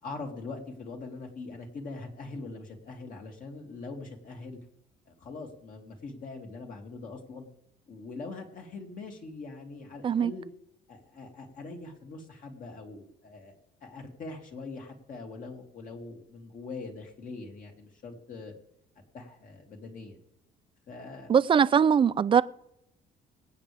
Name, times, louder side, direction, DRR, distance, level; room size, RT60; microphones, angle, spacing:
voice 1, 0.0-4.6 5.1-7.5 7.9-10.5 10.9-13.5 13.8-18.5 19.1-20.2 20.9-21.3, left 3 dB, 50° left, 2.7 m, -42 dB
voice 2, 21.3-22.4, right 7 dB, 30° right, 0.4 m, -21 dB
24.0 x 8.5 x 3.5 m
cardioid pair, 110°, 17 cm